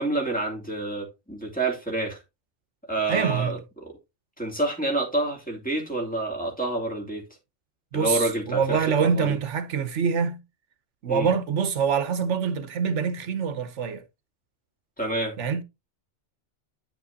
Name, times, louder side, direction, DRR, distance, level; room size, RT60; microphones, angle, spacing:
voice 1, 0.0-2.2 2.9-4.0 4.4-7.2 7.9-9.4 11.1-11.3 15.0-15.4, right 2 dB, 5° left, 2.8 m, -28 dB
voice 2, 3.1-3.5 7.9-10.4 11.0-14.0 15.4-15.6, right 6 dB, 75° right, 1.2 m, -25 dB
9.7 x 7.4 x 2.7 m
omnidirectional pair, 1.2 m